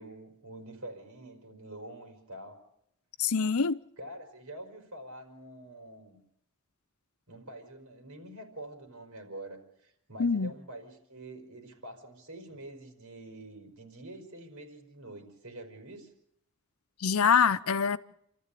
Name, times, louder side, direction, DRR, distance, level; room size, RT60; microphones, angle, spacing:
voice 1, 0.0-2.6 4.0-6.2 7.3-16.1, right 1 dB, 80° right, 4.8 m, -46 dB
voice 2, 3.2-3.8 10.2-10.5 17.0-18.0, left 6 dB, 80° left, 0.8 m, -25 dB
28.0 x 14.0 x 8.4 m
head